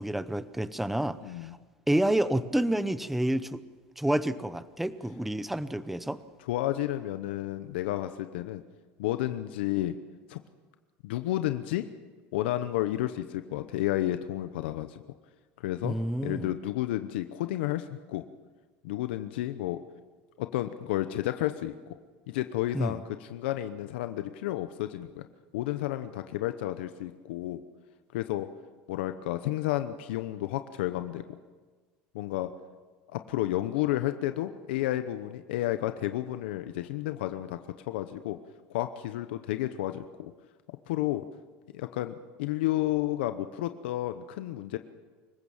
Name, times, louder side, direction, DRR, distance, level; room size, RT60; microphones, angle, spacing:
voice 1, 0.0-1.5 1.9-3.6 4.0-6.2 15.8-16.5 22.7-23.0, right 1 dB, 5° right, 14 dB, 0.8 m, -29 dB
voice 2, 1.2-1.6 6.4-8.6 9.0-10.0 10.3-10.4 11.0-11.8 12.3-15.0 15.6-15.9 16.2-18.2 18.8-19.8 20.4-21.7 22.3-25.2 25.5-27.6 28.1-28.5 28.9-31.2 32.1-32.5 33.1-37.6 37.9-38.4 38.7-40.3 40.9-41.2 41.7-44.8, left 14 dB, 90° left, 10 dB, 0.9 m, -31 dB
25.0 x 15.5 x 7.3 m, 1.4 s
supercardioid pair, 135°, 6 cm